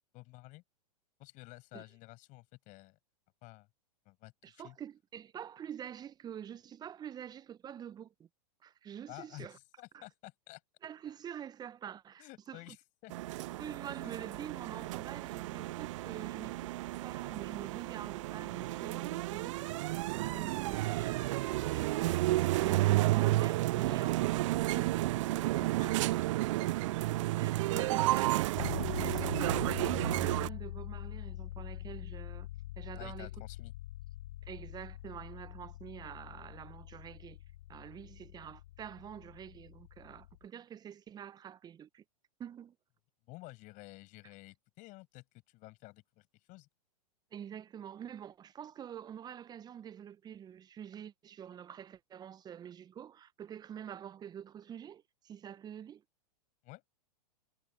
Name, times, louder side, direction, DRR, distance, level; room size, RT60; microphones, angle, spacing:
voice 1, 0.1-0.6 1.2-3.0 3.4-3.7 4.1-4.8 9.1-10.6 12.2-12.8 13.0-13.1 14.0-14.1 25.5-26.2 27.1-27.2 27.7-28.3 33.0-33.7 43.3-46.7 56.6-56.8, left 22 dB, 40° left, 7.5 m, -52 dB
voice 2, 4.4-8.3 8.6-9.6 9.9-10.0 10.8-12.8 13.6-16.8 17.0-25.3 25.8-26.0 27.3-32.5 32.8-33.3 34.4-37.4 37.7-42.0 42.4-42.7 47.3-56.0, right 9 dB, 20° right, 1.0 m, -46 dB
sound 1, 13.1-30.5, right 17 dB, 50° right, 0.4 m, -32 dB
sound 2, 28.6-40.4, left 15 dB, 55° left, 0.7 m, -44 dB
figure-of-eight pair, 105°, 21 cm